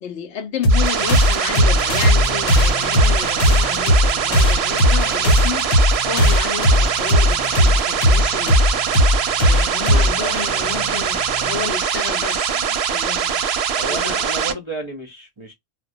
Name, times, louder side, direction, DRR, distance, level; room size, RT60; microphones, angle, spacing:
voice 1, 0.0-8.8 9.4-14.5, left 6 dB, 70° left, 0.8 m, -31 dB
sound 1, 0.6-11.7, left 1 dB, 85° left, 1.1 m, -18 dB
sound 2, 0.7-14.5, right 7 dB, 65° right, 0.7 m, -22 dB
voice 2, 9.8-11.0 13.7-15.5, right 1 dB, 35° right, 0.5 m, -32 dB
2.2 x 2.1 x 2.6 m
omnidirectional pair, 1.3 m